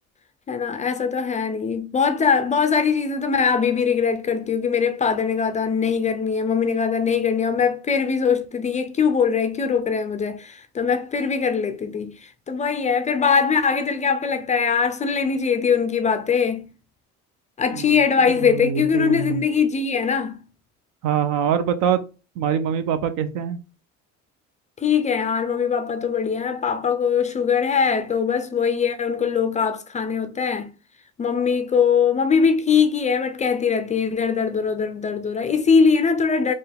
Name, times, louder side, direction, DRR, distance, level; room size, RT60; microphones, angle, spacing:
voice 1, 0.5-16.7 17.6-20.4 24.8-30.7 31.2-36.5, left 6 dB, 25° left, 0.3 m, -21 dB
voice 2, 18.4-19.4 21.0-22.0 22.4-23.6, right 7 dB, 70° right, 0.7 m, -24 dB
4.5 x 2.4 x 3.4 m
cardioid pair, 125°, 32 cm